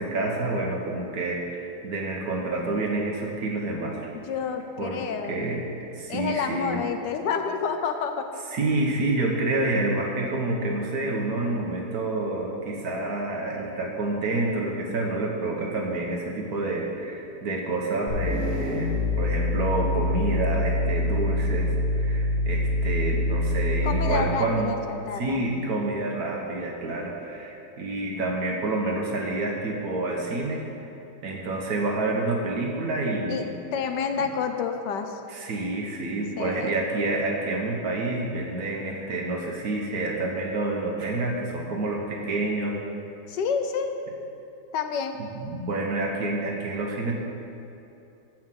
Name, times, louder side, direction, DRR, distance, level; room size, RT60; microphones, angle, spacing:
voice 1, 0.0-4.1 4.8-5.7 6.0-6.8 8.5-24.8 25.1-30.7 31.2-33.5 34.2-34.3 35.3-42.8 45.2-47.1, right 2 dB, 55° right, 0 dB, 1.4 m, -28 dB
voice 2, 4.1-5.4 6.1-8.3 23.8-25.4 33.3-33.4 33.7-35.2 36.4-36.7 43.3-43.9 44.7-45.2, left 6 dB, 75° left, 6 dB, 1.2 m, -29 dB
sound 1, 18.1-24.2, left 2 dB, 20° left, 1.9 m, -25 dB
7.5 x 5.9 x 7.5 m, 2.9 s
omnidirectional pair, 2.0 m